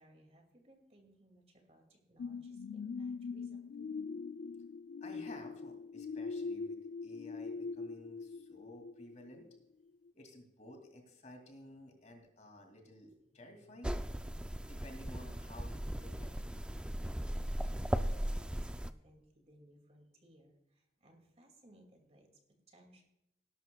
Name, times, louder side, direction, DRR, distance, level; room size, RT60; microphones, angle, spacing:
voice 1, 0.0-3.9 17.6-23.1, right 1 dB, 35° right, 4 dB, 2.3 m, -63 dB
sound 1, 2.2-9.6 10.1-10.2, left 4 dB, 90° left, 0.4 m, -42 dB
voice 2, 5.0-9.5 10.1-14.0 14.6-16.4, left 1 dB, 40° left, 3 dB, 2.5 m, -54 dB
sound 2, 13.8-18.9, equal, 5° right, 0.4 m, -37 dB
19.0 x 11.5 x 2.3 m, 0.87 s
head